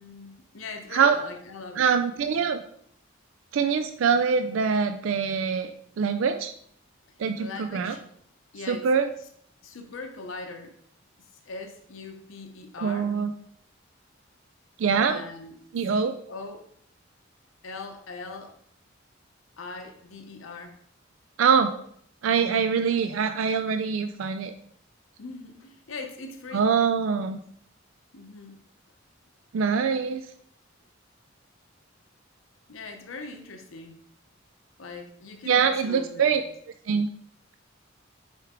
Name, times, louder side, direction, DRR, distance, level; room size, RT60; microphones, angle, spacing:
voice 1, 0.0-1.8 2.1-2.4 7.1-8.0 8.5-8.9 9.2-9.3 9.6-10.7 11.2-13.1 15.0-15.6 15.9-16.7 17.6-18.5 19.6-20.8 25.2-26.7 28.1-28.6 32.7-34.0 34.8-36.4, left 3 dB, 85° left, 4 dB, 0.8 m, -41 dB
voice 2, 1.8-2.6 3.5-6.5 7.2-7.9 8.7-9.1 12.8-13.3 14.8-15.2 15.7-16.1 21.4-21.7 22.2-24.5 26.5-27.4 29.5-30.3 35.4-36.4 36.9-37.1, right 6 dB, 80° right, 8 dB, 0.4 m, -24 dB
6.4 x 4.5 x 3.6 m, 0.66 s
head